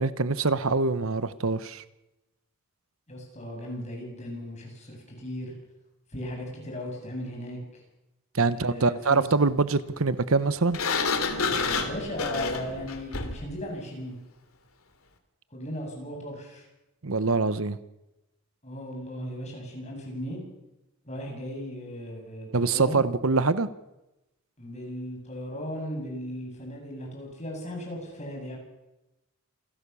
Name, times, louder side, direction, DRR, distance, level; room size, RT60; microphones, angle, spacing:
voice 1, 0.0-1.8 8.3-10.8 17.0-17.8 22.5-23.7, right 3 dB, 70° right, 1.0 m, -24 dB
voice 2, 3.1-5.5 6.1-7.8 8.5-9.3 11.8-14.2 15.5-16.7 18.6-20.4 21.0-23.0 24.6-28.6, equal, 30° left, 8.0 m, -37 dB
Sliding door, 10.7-13.5, left 4 dB, 75° left, 2.9 m, -29 dB
27.5 x 16.5 x 7.0 m
head